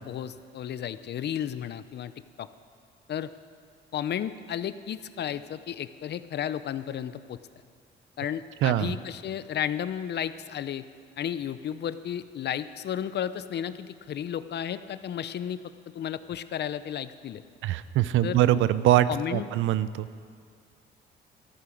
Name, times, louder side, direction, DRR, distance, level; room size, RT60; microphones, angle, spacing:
voice 1, 0.0-2.1 2.4-2.5 3.1-3.3 3.9-7.4 8.2-10.8 11.2-15.6 15.9-17.4 18.2-18.4 19.1-19.5, left 9 dB, 60° left, 13 dB, 0.7 m, -33 dB
voice 2, 8.6-9.0 17.6-20.1, right 13 dB, 85° right, 15 dB, 0.6 m, -23 dB
13.0 x 11.0 x 7.1 m, 2.2 s
cardioid pair, 90°, 20 cm